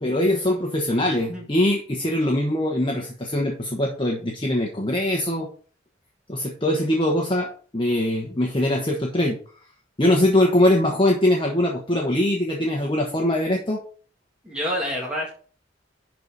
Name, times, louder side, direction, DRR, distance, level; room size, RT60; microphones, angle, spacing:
voice 1, 0.0-5.5 6.3-9.4 10.0-13.8, left 1 dB, 25° left, 0 dB, 1.2 m, -22 dB
voice 2, 14.4-15.3, equal, 5° right, -4 dB, 1.8 m, -27 dB
11.0 x 4.1 x 4.7 m, 0.42 s
head